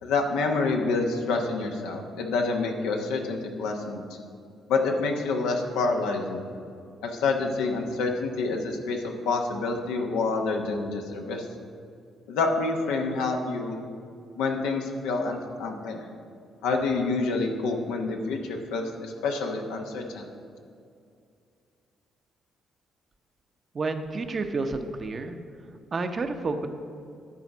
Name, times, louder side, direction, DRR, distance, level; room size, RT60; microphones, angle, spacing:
voice 1, 0.0-4.0 4.7-6.4 7.0-11.5 12.3-13.8 14.4-16.0 16.6-20.3, left 3 dB, 85° left, 2 dB, 0.9 m, -27 dB
voice 2, 23.7-25.4 25.9-26.7, right 3 dB, 45° right, 7 dB, 0.7 m, -30 dB
11.0 x 4.2 x 6.0 m, 2.4 s
supercardioid pair, 60°, 0 cm